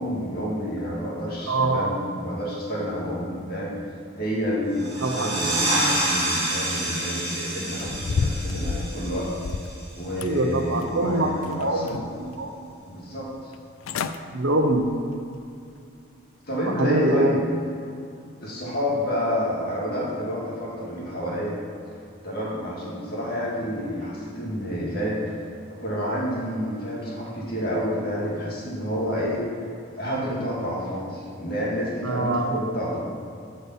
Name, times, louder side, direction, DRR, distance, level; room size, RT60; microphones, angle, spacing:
voice 1, 0.0-3.7 4.2-9.3 10.0-12.0 12.9-13.5 16.5-17.4 18.4-21.6 22.2-25.4 25.8-33.1, equal, 45° left, -5 dB, 2.2 m, -29 dB
voice 2, 1.5-1.9 5.0-5.3 10.2-11.9 12.2-12.7 14.3-14.9 16.8-17.4 32.0-32.6, right 2 dB, 65° right, 5 dB, 0.9 m, -24 dB
sound 1, 4.7-10.1, right 1 dB, 25° right, 2.1 m, -28 dB
sound 2, 7.8-9.8 10.2-11.0 11.4-12.3 12.7-12.8 13.5-13.6 13.8-14.2 14.6-14.9 15.4-15.5, left 4 dB, 80° left, 0.4 m, -30 dB
8.3 x 5.3 x 7.2 m, 2.5 s
head